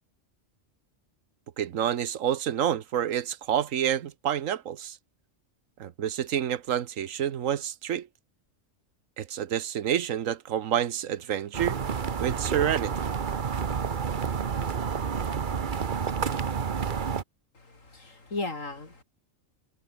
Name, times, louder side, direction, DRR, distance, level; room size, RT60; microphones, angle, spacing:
voice 1, 1.6-5.0 5.8-8.1 9.2-11.8 12.2-12.9, right 9 dB, 90° right, 1.3 m, -28 dB
sound 1, 11.5-17.2, right 6 dB, 45° right, 1.0 m, -29 dB
voice 2, 17.5-19.0, left 3 dB, 85° left, 4.5 m, -36 dB
omnidirectional pair, 1.3 m